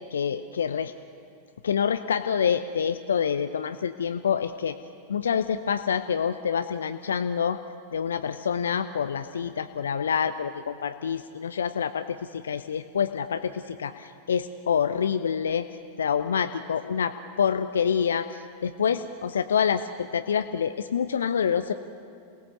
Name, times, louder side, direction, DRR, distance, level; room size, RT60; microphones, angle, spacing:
voice 1, 0.1-0.9 1.6-4.8 5.1-7.6 7.9-15.7 16.0-21.7, left 7 dB, 70° left, 10 dB, 0.6 m, -27 dB
28.0 x 18.5 x 6.9 m, 2.4 s
figure-of-eight pair, 90°, 0 cm